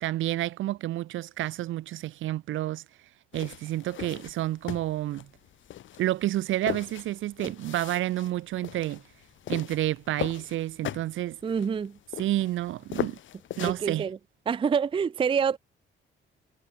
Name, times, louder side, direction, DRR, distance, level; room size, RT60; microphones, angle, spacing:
voice 1, 0.0-2.8 3.3-5.3 6.0-9.0 9.5-11.4 12.2-13.2 13.6-14.1, right 14 dB, 80° right, 1.3 m, -29 dB
sound 1, 3.3-13.9, left 12 dB, 75° left, 6.7 m, -39 dB
voice 2, 11.4-12.0 13.6-14.2 14.5-15.6, right 6 dB, 25° right, 0.4 m, -26 dB
cardioid pair, 90°, 20 cm